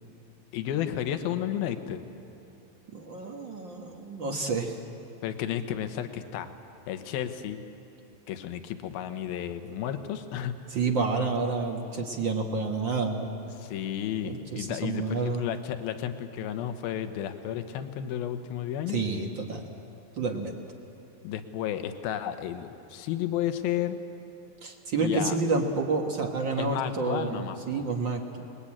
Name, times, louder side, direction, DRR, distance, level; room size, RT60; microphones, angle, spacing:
voice 1, 0.5-2.0 5.2-6.5 6.9-7.6 8.3-10.6 13.6-19.0 21.2-24.0 25.0-25.4 26.6-27.8, left 10 dB, 80° left, 8 dB, 2.9 m, -32 dB
voice 2, 2.9-4.8 10.7-13.3 14.2-15.4 18.9-19.6 20.2-20.5 24.6-28.4, right 4 dB, 50° right, 2 dB, 1.4 m, -29 dB
28.5 x 21.0 x 8.8 m, 2.8 s
omnidirectional pair, 4.3 m